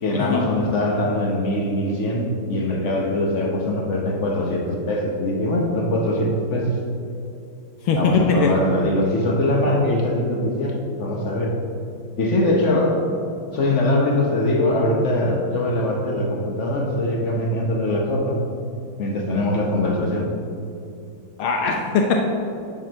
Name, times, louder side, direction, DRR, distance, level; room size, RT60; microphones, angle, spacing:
voice 1, 0.0-6.8 7.9-11.6 12.2-13.0 13.5-18.4 19.0-20.3, left 1 dB, 55° left, 0 dB, 0.8 m, -22 dB
voice 2, 7.8-8.5 21.4-22.1, left 5 dB, 75° left, 2 dB, 1.6 m, -20 dB
9.5 x 4.8 x 6.3 m, 2.5 s
omnidirectional pair, 2.4 m